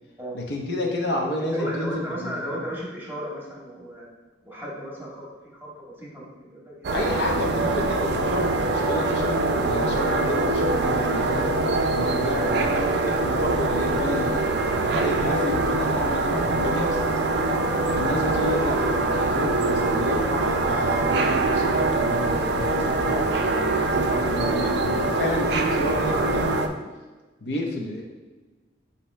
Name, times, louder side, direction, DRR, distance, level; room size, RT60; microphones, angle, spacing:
voice 1, 0.3-2.6 6.9-11.5 11.9-17.0 17.9-26.5 27.4-28.0, left 1 dB, 65° left, -1 dB, 0.8 m, -30 dB
voice 2, 1.5-4.0 4.4-5.2 5.5-5.7 6.0-6.9, equal, 10° right, -5 dB, 1.0 m, -34 dB
sound 1, 6.8-26.7, right 2 dB, 60° right, 0.4 m, -23 dB
5.8 x 2.8 x 3.2 m, 1.2 s
head